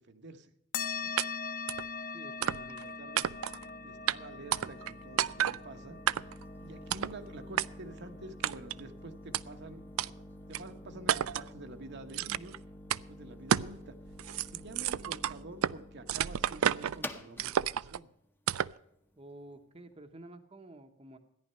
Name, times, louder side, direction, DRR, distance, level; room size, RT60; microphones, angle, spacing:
voice 1, 0.1-0.5 1.0-1.1 2.3-3.3 3.8-6.0 6.6-10.2 10.5-12.6 12.9-13.9 14.4-18.1, right 2 dB, 55° right, 6 dB, 1.0 m, -48 dB
sound 1, 0.7-9.7, left 5 dB, 45° left, 0.6 m, -42 dB
sound 2, 1.2-1.3 1.7-1.9 2.4-2.8 3.2-3.6 4.1-4.2 4.5-4.9 5.2-5.6 6.1-6.4 6.9-7.2 7.6-7.7 8.4-8.8 9.3-9.4 10.0-10.1 10.5-10.6 11.1-11.5 12.1-12.6 12.9-13.0 13.5-13.8 14.1-15.8 16.1-17.0 17.4-18.0 18.5-18.8, right 10 dB, 85° right, 0.4 m, -31 dB
sound 3, 2.0-19.6, left 1 dB, 10° left, 0.8 m, -49 dB
voice 2, 2.1-3.0 19.2-21.2, right 1 dB, 30° right, 6 dB, 0.9 m, -51 dB
14.0 x 10.5 x 5.5 m, 0.79 s
head